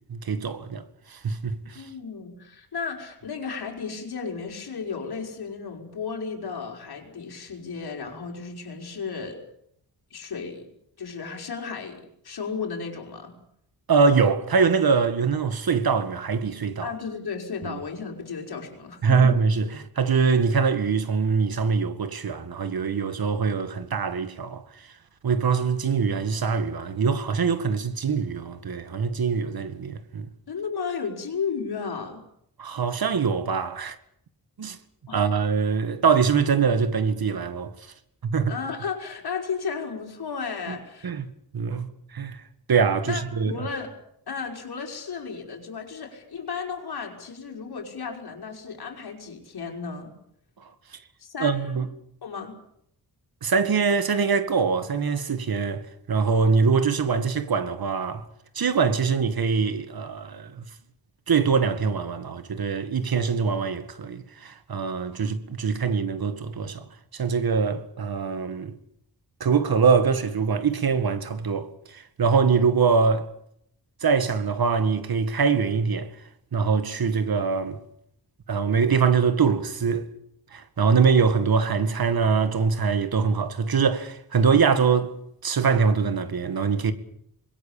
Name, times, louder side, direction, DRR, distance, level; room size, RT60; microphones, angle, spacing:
voice 1, 0.1-1.9 13.9-16.9 17.6-17.8 19.0-24.9 25.2-30.3 32.6-34.0 34.6-34.8 35.1-37.9 38.2-38.5 41.0-42.4 42.7-43.5 50.6-50.7 51.4-51.9 53.4-58.3 58.5-60.6 61.3-66.9 67.1-68.8 69.4-73.3 74.0-76.1 76.5-77.8 78.5-80.1 80.5-85.1 85.4-86.9, right 5 dB, 60° right, 2.0 m, -23 dB
voice 2, 1.7-9.4 10.1-10.7 11.0-13.4 16.8-19.3 30.5-32.3 35.1-35.2 38.5-41.1 43.0-43.9 44.3-50.1 51.2-51.8 52.2-52.6, left 5 dB, 65° left, 5.5 m, -34 dB
25.5 x 21.5 x 7.3 m
wide cardioid pair, 100°, 40 cm